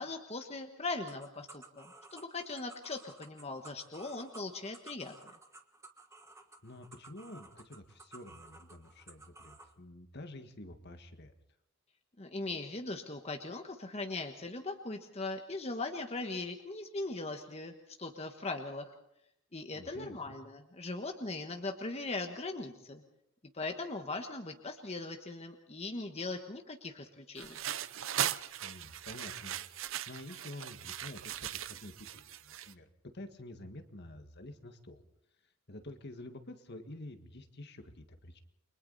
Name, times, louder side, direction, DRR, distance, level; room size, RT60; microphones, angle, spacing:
voice 1, 0.0-5.1 12.2-18.9 19.5-23.0 23.5-27.6, left 3 dB, 30° left, 4 dB, 1.3 m, -40 dB
sound 1, 1.1-9.7, right 3 dB, 15° right, 1.3 m, -55 dB
voice 2, 6.6-11.3 19.7-20.4 28.6-35.0 35.7-38.4, left 1 dB, 55° left, 7 dB, 1.8 m, -49 dB
sound 2, 27.4-32.7, right 10 dB, 70° right, 0.7 m, -39 dB
29.5 x 23.0 x 4.1 m, 0.79 s
head